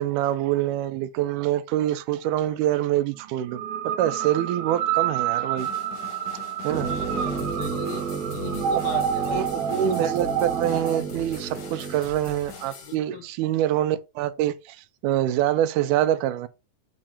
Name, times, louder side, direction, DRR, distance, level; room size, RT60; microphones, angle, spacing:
voice 1, 0.0-5.7 6.6-6.9 9.3-14.8 15.0-16.5, right 12 dB, 85° right, 2.1 m, -25 dB
sound 1, 3.5-11.0, right 9 dB, 70° right, 1.9 m, -29 dB
sound 2, 5.6-12.9, left 3 dB, 55° left, 1.2 m, -42 dB
voice 2, 6.7-9.4 12.8-13.2, left 8 dB, 75° left, 1.5 m, -38 dB
sound 3, 6.7-12.0, right 5 dB, 45° right, 1.3 m, -32 dB
7.4 x 2.5 x 5.6 m
omnidirectional pair, 3.6 m